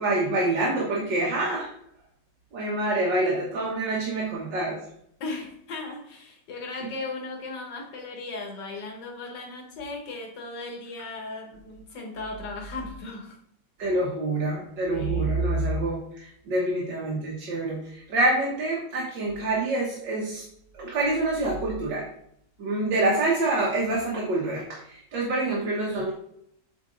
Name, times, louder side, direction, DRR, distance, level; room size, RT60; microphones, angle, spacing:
voice 1, 0.0-1.7 2.5-4.8 13.8-20.4 20.7-22.1 22.6-26.1, right 2 dB, 90° right, -3 dB, 2.1 m, -26 dB
voice 2, 5.2-13.4 14.9-15.4, left 3 dB, 75° left, 1 dB, 2.1 m, -37 dB
8.1 x 4.3 x 3.9 m, 0.70 s
omnidirectional pair, 1.9 m